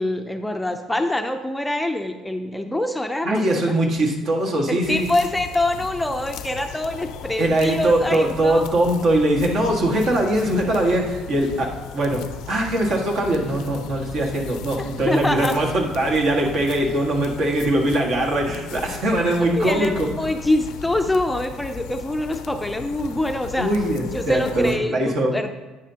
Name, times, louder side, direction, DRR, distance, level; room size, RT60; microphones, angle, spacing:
voice 1, 0.0-3.6 4.7-8.7 14.8-15.6 19.5-23.7 24.1-25.5, left 1 dB, 5° left, 5 dB, 0.5 m, -25 dB
voice 2, 3.2-5.1 7.4-12.2 12.5-20.1 23.6-25.4, right 1 dB, 55° right, 0 dB, 1.7 m, -21 dB
sound 1, 4.8-24.8, left 8 dB, 80° left, 0.5 m, -37 dB
9.6 x 9.2 x 2.9 m, 1.2 s
cardioid pair, 120°, 0 cm